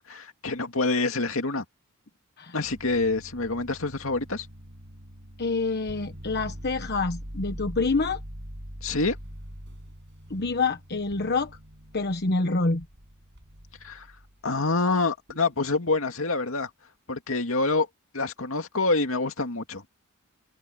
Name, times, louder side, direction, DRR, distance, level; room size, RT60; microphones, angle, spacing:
voice 1, 0.0-1.6 2.5-4.5 8.8-9.2 13.8-14.1 14.4-16.7 17.1-17.9 18.1-19.8, left 3 dB, 70° left, 2.5 m, -26 dB
sound 1, 2.6-14.4 15.3-15.6, equal, 60° right, 7.3 m, -43 dB
voice 2, 5.4-8.2 10.3-11.5 11.9-12.8, left 3 dB, 50° left, 1.2 m, -27 dB
head